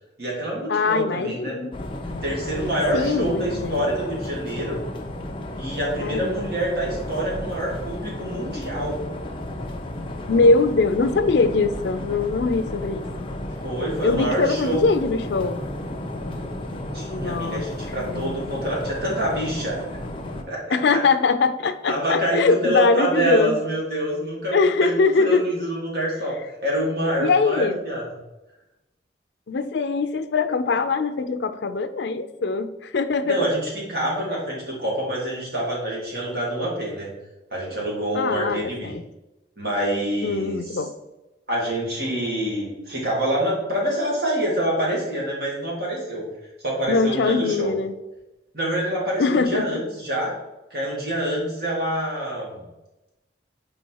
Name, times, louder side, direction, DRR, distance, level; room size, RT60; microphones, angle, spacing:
voice 1, 0.2-1.6 2.2-4.8 5.6-9.0 13.6-14.8 16.9-19.8 20.5-21.0 21.9-28.0 33.2-37.1 37.5-38.9 39.6-40.8 41.5-46.2 46.6-47.7 48.5-50.4 50.7-52.6, right 1 dB, 60° right, -4 dB, 2.1 m, -26 dB
voice 2, 0.7-1.7 2.9-3.8 6.0-6.5 10.3-13.3 14.0-15.6 17.1-17.6 18.0-18.5 20.7-23.6 24.5-25.5 27.2-27.8 29.5-33.5 38.1-39.0 40.2-40.9 46.9-47.9 49.2-49.8, left 4 dB, 75° left, 11 dB, 0.4 m, -22 dB
sound 1, 1.7-20.4, left 1 dB, 30° left, 0.6 m, -33 dB
4.8 x 4.2 x 4.6 m, 1.0 s
head